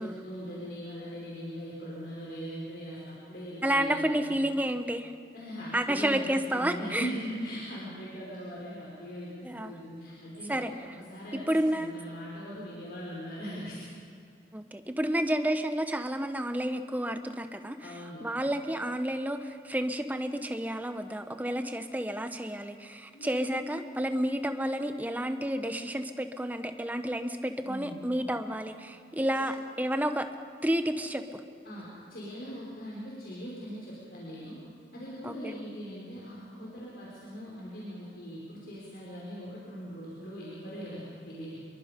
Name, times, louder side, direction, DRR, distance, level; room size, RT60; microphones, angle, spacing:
voice 1, 0.0-4.3 5.3-6.2 6.5-10.7 11.1-13.8 17.8-18.2 23.1-24.0 27.6-28.0 31.6-34.6 34.9-41.6, equal, 60° left, -6 dB, 5.3 m, -40 dB
voice 2, 3.6-5.1 5.7-7.1 9.4-9.8 10.5-11.0 11.5-11.9 14.5-30.3 30.6-31.4 35.2-35.6, right 1 dB, 10° right, 7 dB, 1.0 m, -31 dB
27.0 x 23.0 x 5.3 m, 2.3 s
head